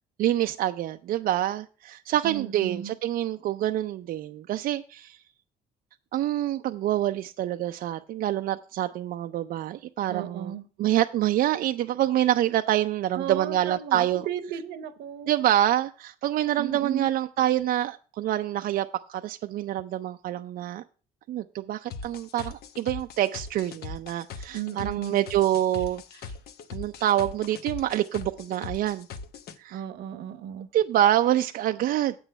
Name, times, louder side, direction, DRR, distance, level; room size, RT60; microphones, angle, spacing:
voice 1, 0.2-5.2 6.1-10.5 10.8-14.3 15.3-20.8 21.3-26.3 26.7-29.1 29.6-29.8 30.7-32.2, right 12 dB, 60° right, 0.4 m, -26 dB
voice 2, 2.2-2.9 10.1-10.6 13.1-15.3 16.6-17.1 24.5-25.2 29.7-30.7, right 10 dB, 80° right, 0.9 m, -34 dB
sound 1, 21.9-29.6, left 5 dB, 70° left, 0.9 m, -40 dB
8.0 x 6.1 x 6.4 m
cardioid pair, 110°, 17 cm